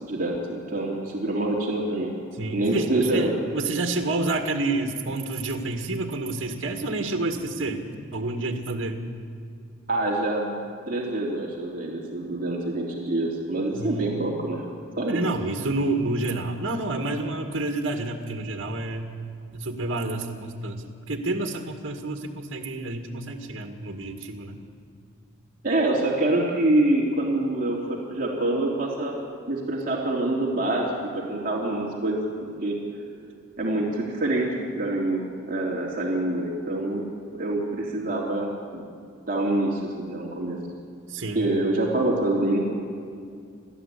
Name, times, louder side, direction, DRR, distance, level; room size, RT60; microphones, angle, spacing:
voice 1, 0.0-2.1 2.5-3.3 9.9-10.6 10.9-14.6 15.0-15.2 25.6-29.2 29.5-30.9 31.1-32.2 32.6-32.8 33.6-37.1 37.3-38.8 39.3-40.6 41.3-42.6, right 2 dB, 40° right, -3 dB, 3.3 m, -26 dB
voice 2, 2.4-7.8 8.1-9.1 13.8-14.0 15.1-19.1 19.5-24.6 41.1-41.5, right 2 dB, 70° right, 3 dB, 2.0 m, -29 dB
30.0 x 13.5 x 8.5 m, 2.3 s
head